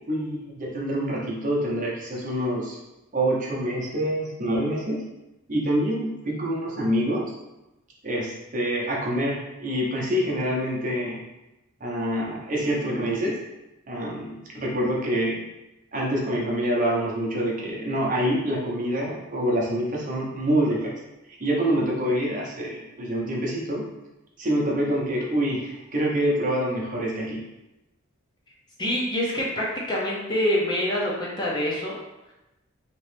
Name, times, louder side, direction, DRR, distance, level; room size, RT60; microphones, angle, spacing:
voice 1, 0.1-2.8 3.1-5.0 5.5-7.3 8.0-11.2 11.8-13.4 13.9-15.4 15.9-20.9 21.4-23.9 24.4-27.4, equal, 35° right, -4 dB, 0.7 m, -26 dB
voice 2, 28.8-32.0, left 1 dB, 20° left, -4 dB, 0.5 m, -26 dB
3.1 x 2.9 x 3.2 m, 0.96 s
head